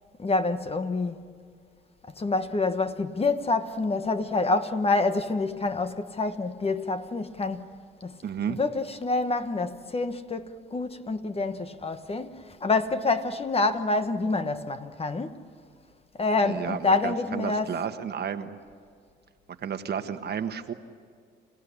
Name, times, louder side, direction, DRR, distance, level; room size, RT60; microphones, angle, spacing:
voice 1, 0.2-1.3 2.1-7.7 8.0-8.2 8.5-15.5 16.2-17.8, left 3 dB, 30° left, 1.3 m, -27 dB
voice 2, 8.2-8.6 16.4-18.6 19.6-20.7, right 7 dB, 55° right, 1.4 m, -32 dB
27.5 x 17.0 x 10.0 m
cardioid pair, 90°, 20 cm